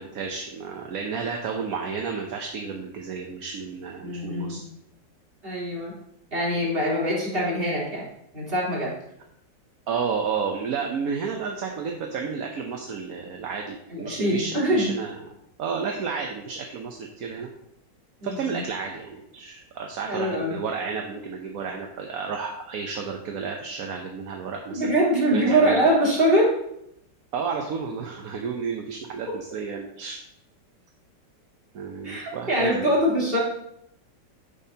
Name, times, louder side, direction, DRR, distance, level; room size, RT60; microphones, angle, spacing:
voice 1, 0.0-4.6 9.9-15.2 15.6-17.5 18.2-24.9 25.3-25.9 27.3-30.2 31.7-32.9, right 5 dB, 60° right, 2 dB, 1.1 m, -31 dB
voice 2, 4.0-4.6 5.4-5.9 6.3-8.1 8.3-8.9 13.9-14.9 18.2-18.6 20.1-20.6 24.7-26.5 32.0-33.4, right 1 dB, 30° right, -7 dB, 3.5 m, -23 dB
10.0 x 7.0 x 2.8 m, 0.77 s
omnidirectional pair, 2.0 m